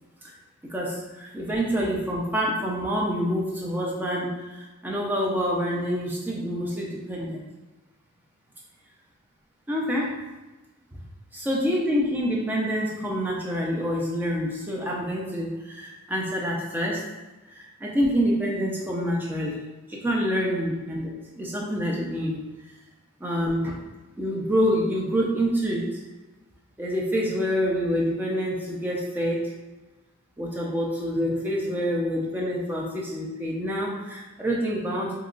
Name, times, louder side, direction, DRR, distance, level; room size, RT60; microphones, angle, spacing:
voice 1, 0.6-7.4 9.7-10.2 10.9-11.0 11.4-17.0 17.5-19.6 19.9-22.4 23.2-23.8 24.2-26.0 26.8-29.5 30.4-35.1, equal, 10° right, -3 dB, 0.4 m, -27 dB
2.8 x 2.3 x 3.8 m, 1.1 s
head